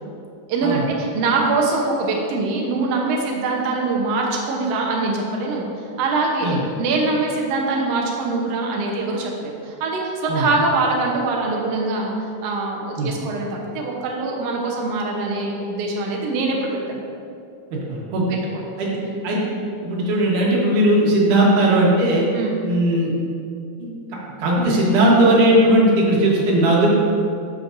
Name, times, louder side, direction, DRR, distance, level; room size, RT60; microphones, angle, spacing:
voice 1, 0.5-12.1 12.4-13.5 13.7-17.0 18.3-18.7 22.3-22.6, right 3 dB, 65° right, -1 dB, 1.7 m, -23 dB
voice 2, 17.7-18.2 18.8-19.0 19.2-19.4 19.8-22.3 22.6-23.1 23.8-23.9 24.4-26.9, right 1 dB, 80° right, -4 dB, 2.9 m, -17 dB
11.5 x 6.4 x 2.6 m, 2.5 s
omnidirectional pair, 3.6 m